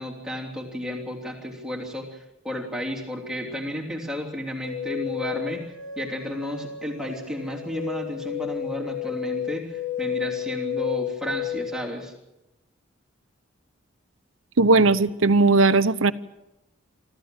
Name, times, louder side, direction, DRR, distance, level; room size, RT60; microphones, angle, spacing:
voice 1, 0.0-12.1, equal, 5° right, 0 dB, 3.0 m, -33 dB
sound 1, 4.6-11.8, left 9 dB, 80° left, 7.4 m, -32 dB
voice 2, 14.6-16.1, right 3 dB, 80° right, 13 dB, 0.9 m, -18 dB
25.0 x 14.5 x 9.0 m, 0.93 s
head